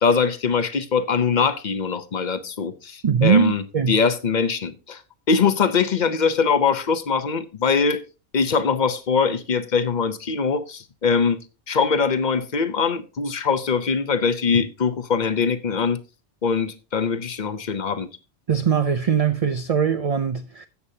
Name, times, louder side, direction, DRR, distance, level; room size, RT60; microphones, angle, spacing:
voice 1, 0.0-3.6 3.9-5.0 5.3-8.0 8.3-11.4 11.7-16.0 16.4-18.1, left 5 dB, 45° left, 0.8 m, -22 dB
voice 2, 3.0-4.0 18.5-20.7, right 7 dB, 45° right, 0.5 m, -21 dB
14.0 x 8.2 x 2.8 m
omnidirectional pair, 1.2 m